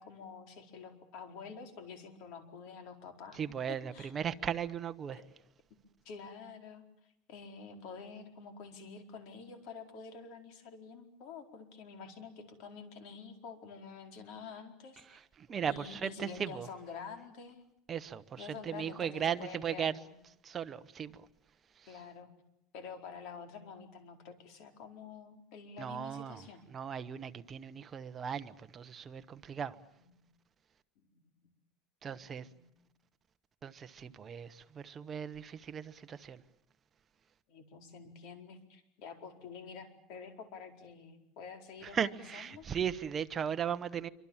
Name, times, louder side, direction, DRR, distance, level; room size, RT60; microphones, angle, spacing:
voice 1, 0.0-3.4 3.9-4.1 5.1-5.3 6.0-6.8 7.3-15.2 15.7-17.6 18.4-20.1 21.9-22.3 22.7-26.6 30.0-30.1 31.0-31.5 32.1-32.8 37.5-42.7, left 5 dB, 55° left, 4.5 m, -48 dB
voice 2, 3.3-5.2 15.1-16.7 17.9-20.0 20.4-21.3 21.8-22.0 25.8-29.8 32.0-32.5 33.6-36.4 41.8-44.1, right 8 dB, 20° right, 1.0 m, -37 dB
27.0 x 25.0 x 7.3 m
cardioid pair, 165°, 0 cm